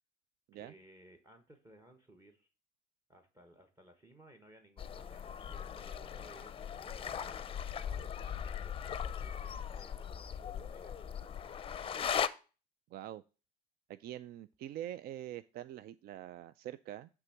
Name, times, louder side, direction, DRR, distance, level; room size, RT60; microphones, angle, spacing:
voice 1, 0.5-2.5 3.1-7.6 8.0-11.2, right 1 dB, 20° right, 6 dB, 1.2 m, -60 dB
sound 1, 4.8-12.3, left 8 dB, 35° left, 0.5 m, -39 dB
voice 2, 12.9-13.2 13.9-17.1, right 12 dB, 65° right, 15 dB, 0.4 m, -44 dB
9.7 x 3.6 x 5.8 m, 0.33 s
cardioid pair, 110°, 17 cm